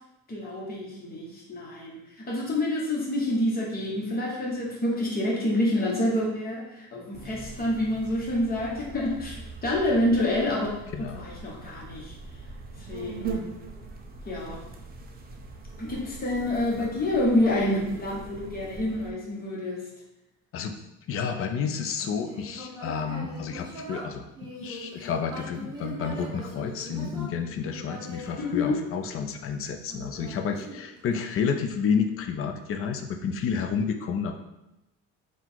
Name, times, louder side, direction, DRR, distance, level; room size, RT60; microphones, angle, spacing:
voice 1, 0.3-12.1 12.9-13.4 14.2-14.6 15.8-19.9 28.4-28.8, left 1 dB, 30° left, -3 dB, 1.1 m, -28 dB
sound 1, 7.1-19.1, right 4 dB, 30° right, 0.5 m, -41 dB
voice 2, 10.9-11.3 16.7-16.9 20.5-20.7 21.1-34.4, left 6 dB, 45° left, 5 dB, 0.5 m, -30 dB
Human voice, 21.9-29.3 29.9-31.3, equal, 15° right, 1.0 m, -41 dB
3.8 x 2.4 x 4.4 m, 0.91 s
cardioid pair, 135°, 31 cm